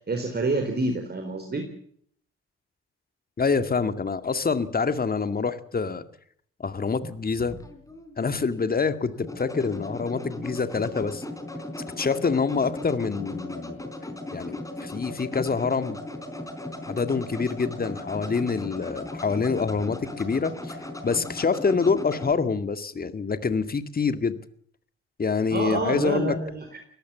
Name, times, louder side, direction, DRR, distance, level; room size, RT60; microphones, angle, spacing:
voice 1, 0.0-1.7 25.5-26.8, right 2 dB, 30° right, 5 dB, 4.1 m, -28 dB
voice 2, 3.4-6.1 6.6-7.6 8.2-11.2 12.0-13.8 14.3-16.0 16.9-20.8 21.0-24.4 25.2-26.4, left 5 dB, 30° left, 11 dB, 2.0 m, -26 dB
sound 1, 7.0-22.3, left 1 dB, 10° left, 4.5 m, -37 dB
22.5 x 18.5 x 7.1 m, 0.63 s
figure-of-eight pair, 45°, 32 cm